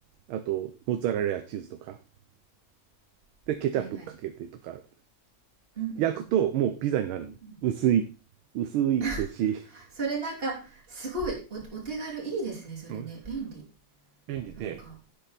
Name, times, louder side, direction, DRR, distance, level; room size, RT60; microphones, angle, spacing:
voice 1, 0.3-2.0 3.5-4.8 6.0-8.1 8.5-9.6 12.9-13.1 14.3-14.8, right 10 dB, 85° right, 9 dB, 1.6 m, -28 dB
voice 2, 3.8-4.1 5.7-6.3 7.4-7.6 9.0-9.3 9.7-13.7 14.6-14.9, right 3 dB, 25° right, -3 dB, 3.3 m, -34 dB
9.9 x 8.0 x 4.1 m, 0.33 s
omnidirectional pair, 2.2 m